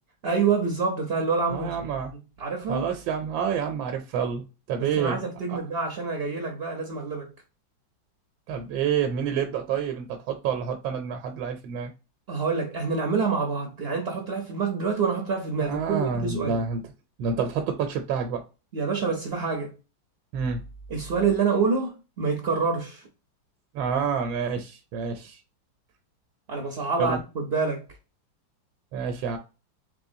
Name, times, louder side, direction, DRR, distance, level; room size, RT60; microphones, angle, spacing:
voice 1, 0.2-1.7 2.4-2.9 4.8-7.3 12.3-16.6 18.7-19.7 20.9-23.0 26.5-27.8, right 5 dB, 65° right, 0.6 m, -27 dB
voice 2, 1.5-2.1 2.7-5.2 5.5-5.6 8.5-11.9 15.6-16.8 17.2-18.4 20.3-20.6 23.7-25.4 27.0-27.2 28.9-29.4, right 6 dB, 90° right, 1.4 m, -28 dB
4.1 x 3.0 x 2.7 m
omnidirectional pair, 2.1 m